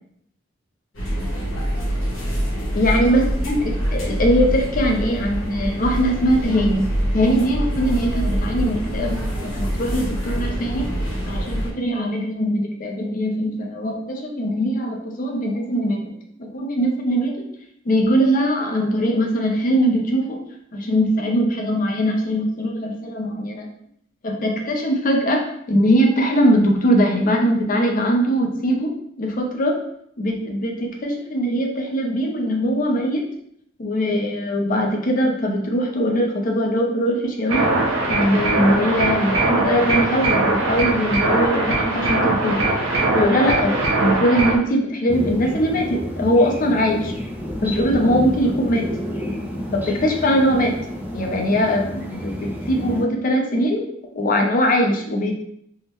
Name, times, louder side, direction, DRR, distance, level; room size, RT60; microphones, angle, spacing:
sound 1, 0.9-11.7, equal, 90° left, 1.1 m, -25 dB
voice 1, 2.7-6.8 7.1-9.2 9.5-10.9 11.3-16.1 16.4-17.5 17.8-20.4 20.7-23.7 24.2-29.8 30.2-33.2 33.8-37.7 38.0-42.7 43.1-47.1 47.6-48.9 49.7-50.8 51.1-53.8 54.1-55.3, equal, 45° left, 1 dB, 0.5 m, -21 dB
sound 2, 37.5-44.6, right 2 dB, 75° right, 0.7 m, -21 dB
sound 3, 45.1-53.0, equal, 10° right, 0.4 m, -30 dB
3.5 x 2.1 x 2.9 m, 0.69 s
head